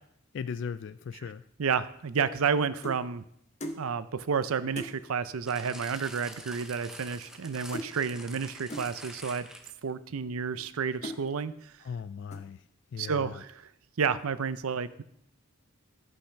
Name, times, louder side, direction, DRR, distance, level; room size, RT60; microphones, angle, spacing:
voice 1, 0.3-1.5 11.8-13.4, left 6 dB, 55° left, 13 dB, 0.3 m, -38 dB
voice 2, 1.6-3.2 3.8-9.5 9.8-11.7 13.0-13.5 14.0-15.0, right 6 dB, 80° right, 14 dB, 0.6 m, -30 dB
sound 1, 1.9-3.1 3.6-3.9 4.3-4.4 4.7-5.0 5.9-6.0 6.2-6.5 6.8-7.5 7.7-8.0 8.7-8.9 9.6-9.7 10.3-10.7 11.0-11.3 11.8-12.0 12.3-12.7, equal, 30° left, 0.9 m, -41 dB
sound 2, 5.5-9.9 10.6-10.7, equal, 5° right, 0.8 m, -46 dB
12.0 x 5.4 x 5.7 m, 0.72 s
head